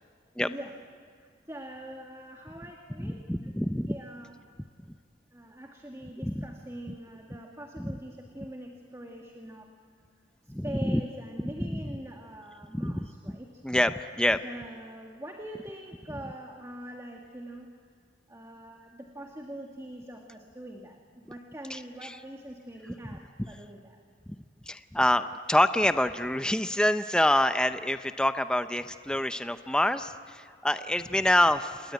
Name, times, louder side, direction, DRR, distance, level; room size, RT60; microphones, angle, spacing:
voice 1, 0.4-0.7 1.2-3.5 3.9-4.3 5.3-9.7 10.5-13.6 14.4-17.7 18.3-24.0, right 1 dB, 15° right, 2 dB, 1.8 m, -43 dB
voice 2, 3.0-4.0 6.2-6.5 7.8-7.9 10.5-11.0 11.6-12.0 12.7-13.1 13.6-14.4 21.7-22.2 24.7-31.9, left 1 dB, 5° left, 10 dB, 0.6 m, -26 dB
28.5 x 20.0 x 9.2 m, 2.1 s
head